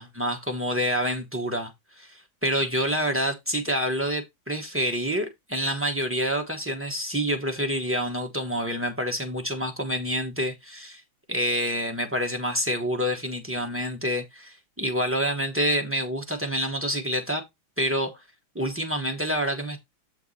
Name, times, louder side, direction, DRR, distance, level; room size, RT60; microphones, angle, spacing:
voice 1, 0.0-11.0 11.3-17.4 17.8-18.2 18.5-19.8, equal, 20° right, 0.3 m, -27 dB
7.2 x 4.6 x 4.0 m
omnidirectional pair, 2.1 m